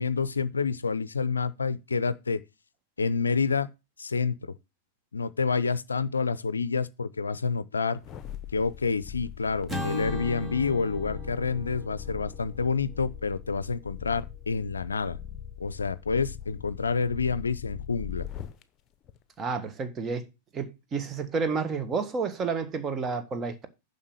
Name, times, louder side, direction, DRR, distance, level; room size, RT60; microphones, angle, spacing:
voice 1, 0.0-2.4 3.0-3.7 4.0-4.5 5.1-8.0 8.5-15.2 15.6-18.3, left 5 dB, 75° left, 0.5 m, -28 dB
sound 1, 8.0-18.6 19.1-19.2, left 10 dB, 30° left, 0.9 m, -41 dB
Acoustic guitar / Strum, 9.7-14.1, equal, 5° right, 2.5 m, -39 dB
voice 2, 19.4-20.3 20.5-23.7, right 5 dB, 25° right, 1.5 m, -30 dB
7.3 x 5.6 x 7.2 m
figure-of-eight pair, 95°, 0 cm